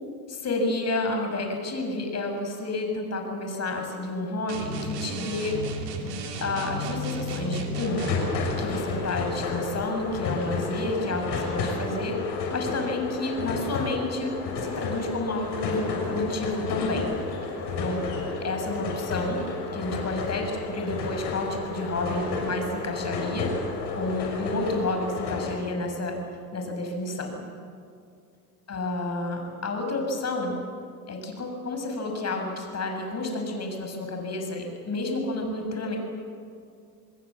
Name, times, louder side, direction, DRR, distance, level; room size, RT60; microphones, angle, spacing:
voice 1, 0.3-5.6 6.4-8.1 8.6-17.1 17.8-18.1 18.4-19.4 19.7-23.5 23.9-26.2 26.5-27.4 28.7-30.6 31.1-36.0, left 2 dB, 30° left, 3 dB, 6.6 m, -30 dB
sound 1, 4.5-8.3, equal, 80° right, 3.0 m, -33 dB
sound 2, 7.8-25.5, left 4 dB, 55° left, 6.6 m, -31 dB
26.5 x 20.0 x 7.6 m, 2.4 s
hypercardioid pair, 70°, 48 cm